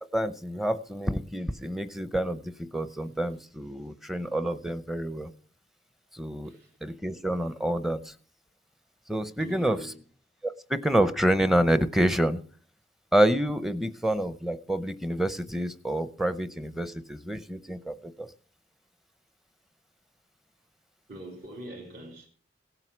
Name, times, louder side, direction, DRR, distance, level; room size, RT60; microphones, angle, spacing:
voice 1, 0.1-5.3 6.1-6.5 6.8-8.1 9.1-9.9 10.4-12.4 13.1-18.3, right 1 dB, ahead, 0.7 m, -28 dB
voice 2, 6.4-6.8 9.4-10.0 21.1-22.3, right 1 dB, 60° right, 2.5 m, -43 dB
17.0 x 7.7 x 6.0 m
head